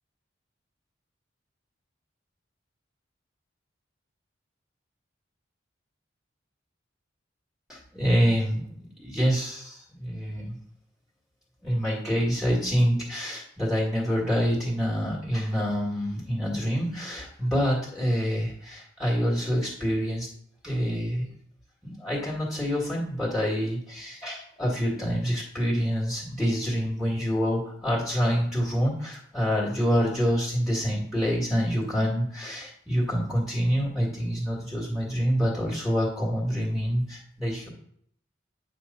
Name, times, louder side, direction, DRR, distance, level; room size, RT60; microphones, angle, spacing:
voice 1, 7.7-10.6 11.6-20.3 20.6-21.3 21.8-37.7, equal, 5° right, -3 dB, 1.7 m, -26 dB
8.9 x 3.1 x 5.3 m, 0.64 s
head